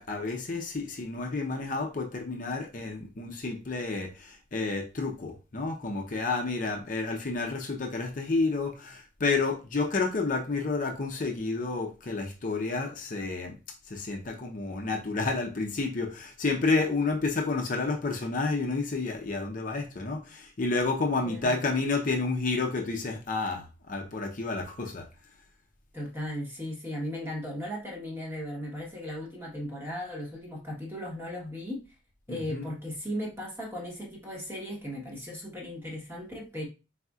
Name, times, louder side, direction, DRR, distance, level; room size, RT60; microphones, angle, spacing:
voice 1, 0.0-13.6 13.9-25.1 32.3-32.7, left 3 dB, 40° left, 2 dB, 0.6 m, -30 dB
voice 2, 21.2-21.6 25.9-31.8 32.3-36.7, left 1 dB, 10° right, -2 dB, 1.2 m, -37 dB
4.1 x 4.0 x 2.3 m, 0.30 s
head